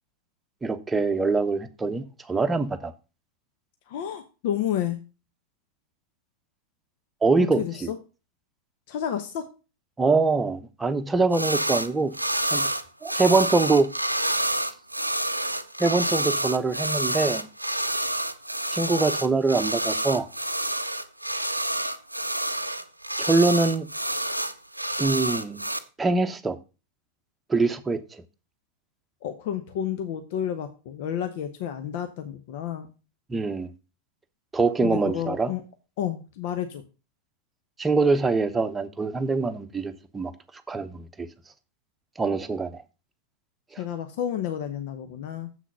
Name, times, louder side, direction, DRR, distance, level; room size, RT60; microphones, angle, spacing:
voice 1, 0.6-2.9 7.2-7.9 10.0-12.1 12.5-12.7 13.0-13.9 15.8-17.5 18.7-20.3 23.2-23.9 25.0-25.6 26.0-26.6 27.5-28.2 33.3-33.7 34.5-35.5 37.8-40.3 40.7-41.3 42.2-42.8 43.7-43.8, right 3 dB, 10° right, 0.9 m, -24 dB
voice 2, 3.9-5.0 7.6-8.0 8.9-9.5 29.2-32.9 34.8-35.6 36.0-36.8 43.8-45.5, left 10 dB, 50° left, 0.9 m, -30 dB
sound 1, 11.3-11.9 12.1-25.8, right 1 dB, 85° right, 0.6 m, -28 dB
7.5 x 6.1 x 5.5 m
figure-of-eight pair, 90°, 0 cm